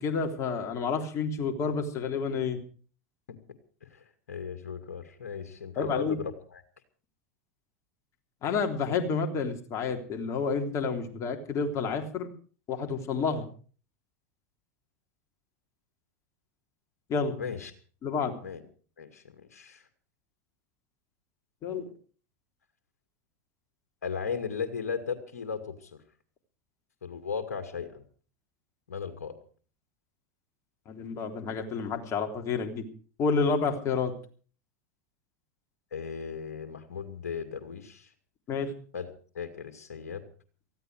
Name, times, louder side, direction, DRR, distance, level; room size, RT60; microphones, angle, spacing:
voice 1, 0.0-2.6 5.8-6.2 8.4-12.3 12.7-13.4 17.1-17.3 18.0-18.3 21.6-21.9 30.9-32.9 33.2-34.1 38.5-38.7, left 5 dB, 40° left, 4 dB, 3.5 m, -29 dB
voice 2, 3.8-6.6 17.4-17.7 18.4-18.6 19.0-19.8 24.0-26.0 27.0-28.0 28.9-29.3 35.9-38.1 38.9-39.1 39.3-40.2, left 6 dB, 80° left, 7 dB, 2.4 m, -36 dB
19.0 x 14.5 x 4.9 m, 0.42 s
hypercardioid pair, 90°, 8 cm